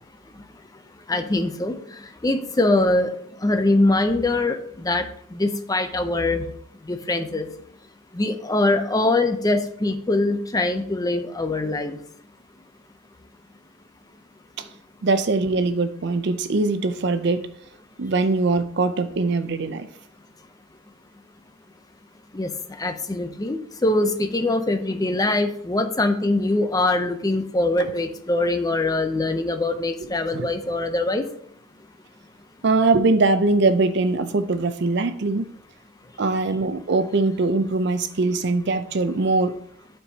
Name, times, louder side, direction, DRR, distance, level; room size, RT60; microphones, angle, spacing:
voice 1, 1.1-1.8 2.2-3.1 3.4-5.1 5.3-6.5 6.9-7.5 8.1-12.0 22.3-22.5 22.8-31.3, left 2 dB, 20° left, 0.6 m, -23 dB
voice 2, 15.0-17.5 18.0-19.9 30.3-30.5 32.6-35.5 36.2-39.6, right 3 dB, 55° right, 0.5 m, -22 dB
12.0 x 4.5 x 2.8 m
head